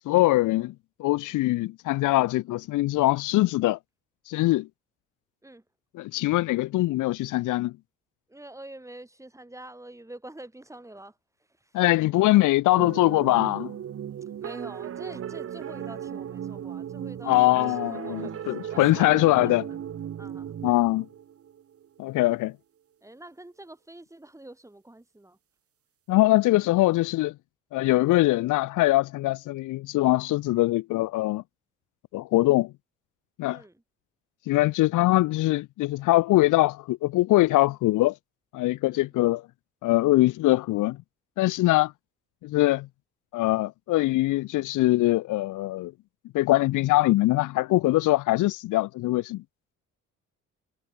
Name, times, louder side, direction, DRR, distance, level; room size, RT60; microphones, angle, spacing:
voice 1, 0.1-0.7 1.0-3.8 4.3-4.7 6.0-7.7 11.7-13.7 17.3-19.6 20.6-21.1 22.0-22.5 26.1-27.3 27.7-31.4 32.1-32.7 33.4-33.6 34.5-38.1 38.5-39.4 39.8-41.0 41.4-41.9 42.4-42.9 43.3-45.9 46.3-49.4, left 18 dB, 85° left, 0.8 m, -22 dB
voice 2, 8.3-11.2 11.5-11.8 14.2-19.9 20.2-20.5 23.0-25.4 33.5-33.8 38.9-39.1, right 1 dB, 10° right, 5.8 m, -46 dB
sound 1, 12.8-22.0, right 9 dB, 50° right, 1.1 m, -36 dB
cardioid pair, 90°, 30 cm